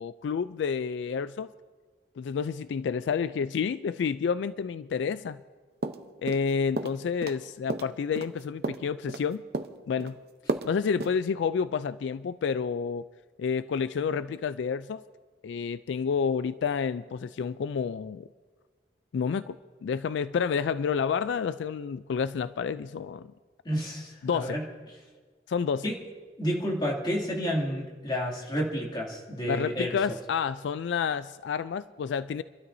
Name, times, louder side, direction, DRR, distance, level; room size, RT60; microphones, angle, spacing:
voice 1, 0.0-1.5 2.2-5.4 6.2-9.4 9.9-10.1 10.6-13.1 13.4-15.0 15.4-18.3 19.1-23.3 24.2-24.6 25.5-25.9 29.4-32.4, left 6 dB, 80° left, 14 dB, 0.3 m, -29 dB
sound 1, 5.8-6.5 6.8-7.4 7.7-9.3 9.5-10.1 10.5-10.7 11.0-11.1, right 2 dB, 60° right, 0.7 m, -33 dB
voice 2, 23.6-24.6 25.8-26.0 26.4-30.0, equal, 25° left, -2 dB, 2.4 m, -30 dB
29.5 x 12.5 x 2.7 m, 1.5 s
head